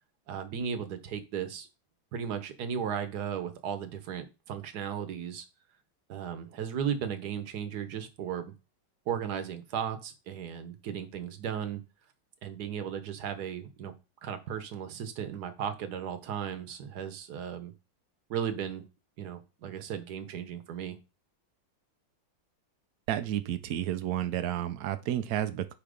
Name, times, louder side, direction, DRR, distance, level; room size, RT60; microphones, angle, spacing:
voice 1, 0.3-1.7 2.1-5.5 6.1-8.5 9.1-11.8 12.4-13.9 14.2-17.7 18.3-18.8 19.2-21.0, right 8 dB, 60° right, 9 dB, 1.3 m, -35 dB
voice 2, 23.1-25.7, right 11 dB, 75° right, 10 dB, 0.8 m, -31 dB
8.5 x 2.9 x 5.1 m, 0.29 s
omnidirectional pair, 2.2 m